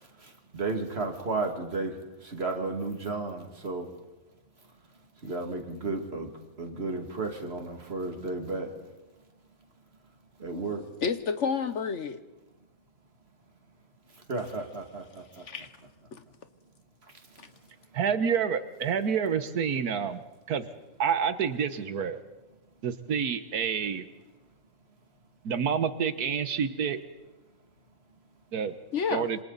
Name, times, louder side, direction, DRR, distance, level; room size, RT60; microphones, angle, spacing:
voice 1, 0.5-1.9 2.2-3.9 5.2-6.3 6.6-8.7 10.4-10.8 14.3-15.2, right 3 dB, 45° right, 4 dB, 2.5 m, -33 dB
voice 2, 11.0-12.2 15.3-15.7 16.1-16.2 17.4-17.5 28.9-29.3, left 6 dB, 55° left, 10 dB, 1.2 m, -30 dB
voice 3, 17.9-20.2 20.5-20.6 21.0-22.2 22.8-24.1 25.4-27.0 28.5-28.7 29.1-29.4, right 7 dB, 90° right, 11 dB, 1.6 m, -28 dB
27.0 x 26.5 x 4.0 m, 1.1 s
omnidirectional pair, 1.6 m